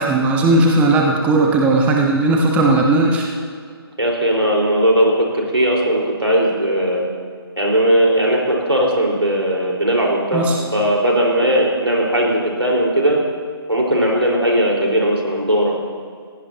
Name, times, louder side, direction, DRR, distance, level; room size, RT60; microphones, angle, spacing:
voice 1, 0.0-3.3 10.3-10.6, right 2 dB, 10° right, 0 dB, 1.0 m, -16 dB
voice 2, 4.0-7.0 7.6-13.2 13.7-15.7, right 1 dB, 85° right, -1 dB, 4.3 m, -18 dB
20.5 x 16.5 x 2.9 m, 2.1 s
figure-of-eight pair, 145°, 14 cm